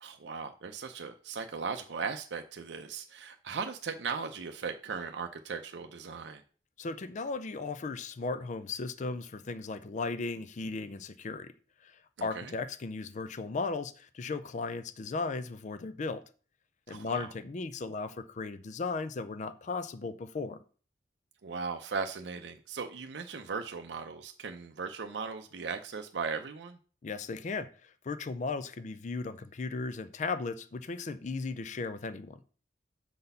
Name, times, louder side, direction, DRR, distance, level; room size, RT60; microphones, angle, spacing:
voice 1, 0.0-6.4 12.2-12.5 16.9-17.3 21.4-26.8, right 5 dB, 75° right, 0.5 m, -38 dB
voice 2, 6.8-11.5 11.8-16.2 16.9-20.6 27.0-32.4, left 4 dB, 45° left, 0.4 m, -36 dB
6.8 x 4.1 x 5.4 m
head